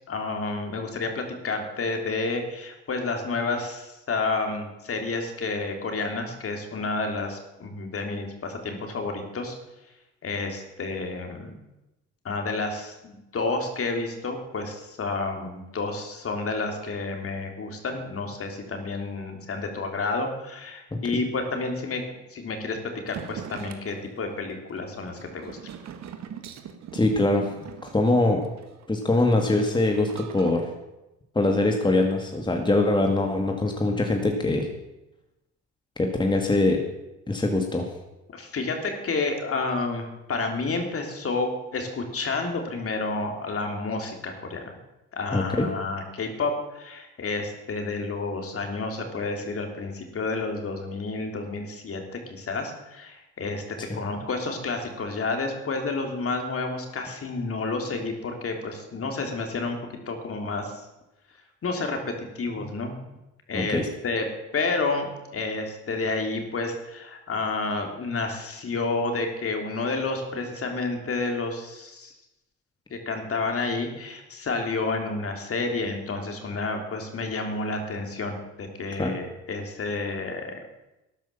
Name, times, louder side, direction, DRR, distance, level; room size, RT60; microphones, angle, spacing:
voice 1, 0.1-9.6 10.2-11.5 12.2-22.0 22.3-22.8 23.1-25.6 38.3-44.8 45.1-59.8 60.1-60.9 61.6-62.9 63.5-64.3 64.5-65.1 65.3-72.1 72.9-80.6, left 3 dB, 45° left, 3 dB, 3.6 m, -30 dB
sound 1, 23.1-30.5, right 8 dB, 55° right, 1.9 m, -42 dB
voice 2, 26.9-27.5 27.8-28.5 28.9-30.7 31.4-34.7 36.0-36.8 37.3-37.9 45.3-45.7 53.9-54.0 63.5-63.8 79.0-79.1, left 2 dB, 15° left, 2 dB, 2.2 m, -23 dB
13.0 x 10.5 x 7.0 m, 0.97 s
supercardioid pair, 75°, 32 cm